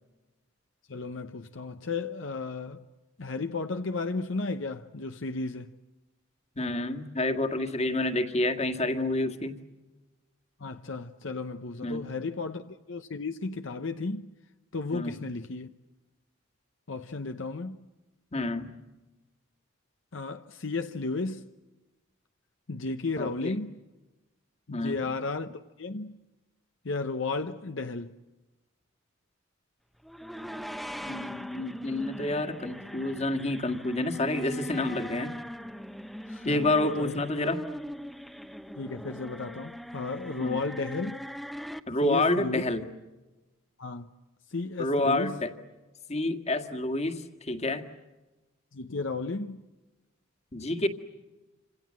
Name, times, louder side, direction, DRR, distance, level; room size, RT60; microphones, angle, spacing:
voice 1, 0.9-2.9 3.2-5.7 10.6-14.3 14.7-15.7 16.9-17.8 20.1-21.5 22.7-23.8 24.7-26.2 26.8-28.1 36.3-37.2 38.8-41.2 42.0-42.6 43.8-44.1 44.5-45.4 48.7-49.6, left 3 dB, 65° left, 0.9 m, -34 dB
voice 2, 6.6-9.6 11.8-12.0 14.9-15.2 18.3-18.7 23.2-23.6 24.7-25.0 31.0-35.3 36.4-37.6 40.4-40.6 41.9-42.8 44.8-45.5 46.1-47.8 50.5-50.9, left 2 dB, 30° left, 1.9 m, -29 dB
sound 1, 30.0-41.8, equal, ahead, 0.9 m, -40 dB
28.0 x 27.0 x 7.6 m
head